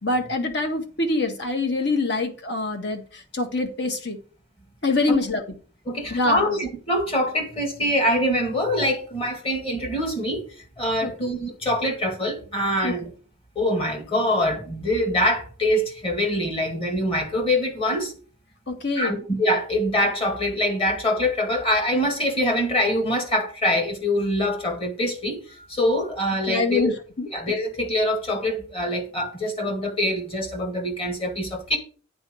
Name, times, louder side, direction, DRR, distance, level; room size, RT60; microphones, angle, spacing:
voice 1, 0.0-4.2 4.8-5.4 6.1-6.6 11.0-11.1 12.8-12.9 18.7-19.2 26.5-27.3, left 2 dB, 55° left, 1.6 m, -25 dB
voice 2, 5.9-10.5 10.8-13.1 13.6-18.1 19.0-26.9 27.3-31.8, left 1 dB, 25° left, 2.1 m, -24 dB
8.8 x 4.4 x 6.2 m
head